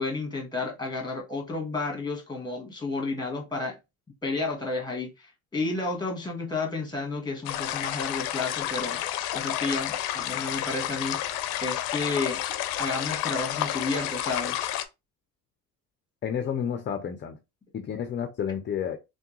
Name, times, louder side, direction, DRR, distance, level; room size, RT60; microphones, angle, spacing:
voice 1, 0.0-3.8 4.2-9.0 9.3-11.2 11.6-12.4 12.8-14.6, left 3 dB, 10° left, 1.4 m, -31 dB
sound 1, 7.5-14.9, left 12 dB, 75° left, 0.6 m, -30 dB
voice 2, 16.2-17.4 17.7-19.0, left 8 dB, 30° left, 0.6 m, -30 dB
3.5 x 2.3 x 3.0 m
supercardioid pair, 100°, 36 cm